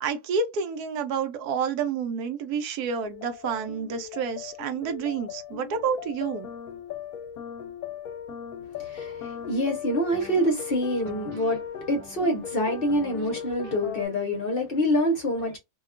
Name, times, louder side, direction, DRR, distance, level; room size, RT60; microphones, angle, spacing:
voice 1, 0.0-6.5 11.3-11.6 13.6-13.7, right 6 dB, 80° right, 1.1 m, -29 dB
sound 1, 3.1-14.1, left 8 dB, 75° left, 1.0 m, -38 dB
voice 2, 8.9-11.6 11.9-15.6, equal, 45° left, 0.8 m, -26 dB
2.8 x 2.3 x 2.4 m
omnidirectional pair, 1.7 m